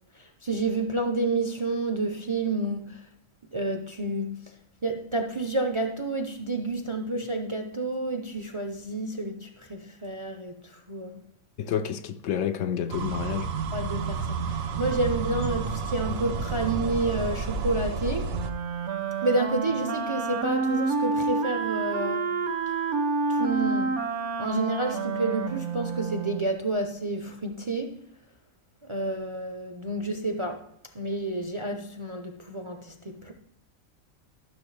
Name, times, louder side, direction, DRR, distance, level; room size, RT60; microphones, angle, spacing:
voice 1, 0.1-3.1 3.5-4.6 4.8-11.3 13.7-18.3 19.2-22.4 23.3-24.0 24.4-28.0 28.8-30.6 30.9-33.3, right 2 dB, 35° right, 0.5 m, -30 dB
voice 2, 11.6-13.5, left 9 dB, 70° left, 0.9 m, -29 dB
sound 1, 12.9-18.5, right 5 dB, 80° right, 1.2 m, -30 dB
Wind instrument woodwind instrument, 18.3-26.5, right 4 dB, 60° right, 1.0 m, -29 dB
12.5 x 6.9 x 3.3 m
omnidirectional pair, 1.4 m